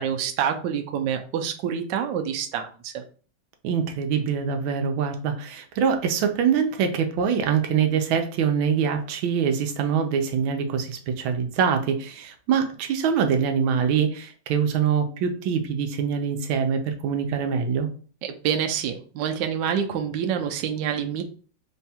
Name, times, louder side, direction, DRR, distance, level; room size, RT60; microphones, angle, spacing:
voice 1, 0.0-3.0 18.2-21.2, right 8 dB, 75° right, 5 dB, 1.2 m, -27 dB
voice 2, 3.6-17.9, right 7 dB, 90° right, 5 dB, 1.4 m, -24 dB
3.6 x 2.3 x 4.1 m, 0.41 s
omnidirectional pair, 2.2 m